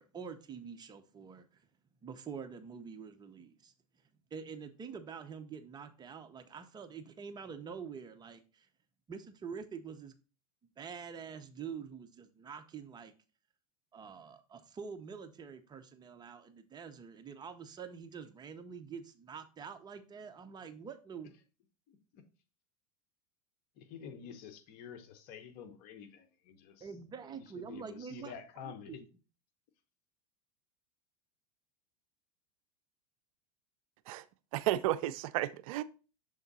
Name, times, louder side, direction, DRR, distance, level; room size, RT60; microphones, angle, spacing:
voice 1, 0.0-1.7 2.0-3.7 4.3-8.7 9.1-10.1 10.8-13.1 13.9-21.3 26.8-28.3 28.6-29.1, right 6 dB, 20° right, 0.7 m, -46 dB
voice 2, 21.9-22.2 23.8-26.9 27.3-29.0, left 7 dB, 50° left, 1.1 m, -49 dB
voice 3, 34.5-35.8, right 14 dB, 65° right, 0.4 m, -32 dB
6.7 x 3.6 x 4.0 m
hypercardioid pair, 115°, 19 cm